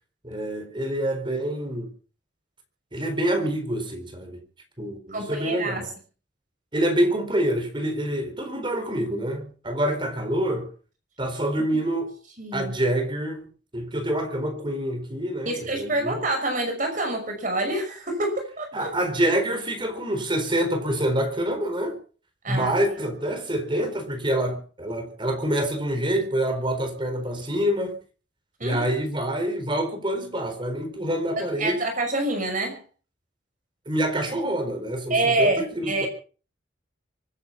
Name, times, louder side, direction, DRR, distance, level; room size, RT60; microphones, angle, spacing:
voice 1, 0.2-1.9 2.9-4.4 4.8-5.9 6.7-10.7 11.2-12.1 12.5-13.5 13.7-16.2 18.7-22.0 22.5-28.0 28.6-31.8 33.9-36.1, right 1 dB, 25° right, 4.3 m, -26 dB
voice 2, 5.1-5.8 11.7-11.8 12.4-12.7 15.5-18.9 22.4-22.7 28.6-28.8 31.4-32.8 35.1-36.1, right 2 dB, 45° right, 5.9 m, -27 dB
24.5 x 9.9 x 5.9 m
head